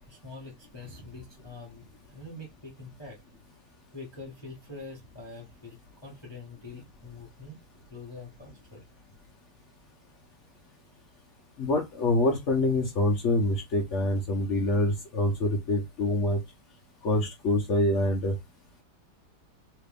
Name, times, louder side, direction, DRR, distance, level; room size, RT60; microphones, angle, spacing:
voice 1, 0.1-3.2 3.9-7.6 7.9-8.8, left 3 dB, 40° left, 0.4 m, -45 dB
voice 2, 11.6-16.4 17.0-18.3, left 2 dB, 75° left, 0.6 m, -25 dB
3.3 x 2.9 x 3.4 m
omnidirectional pair, 2.3 m